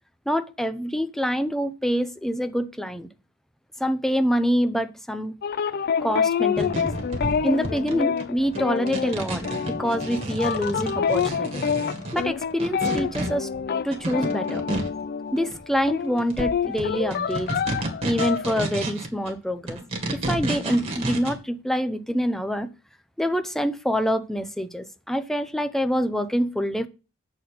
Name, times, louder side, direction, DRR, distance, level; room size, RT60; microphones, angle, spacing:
voice 1, 0.3-3.1 3.8-5.3 6.0-6.9 7.4-11.6 12.1-13.5 13.8-14.6 15.3-17.5 18.0-19.8 20.1-22.7 23.2-26.9, equal, ahead, 0.6 m, -26 dB
sound 1, 5.4-15.6 15.9-18.6, left 7 dB, 50° left, 0.4 m, -27 dB
sound 2, 6.6-15.0 15.4-15.9 16.2-19.3 19.7-21.3, right 1 dB, 30° right, 2.0 m, -31 dB
8.1 x 4.3 x 6.7 m
head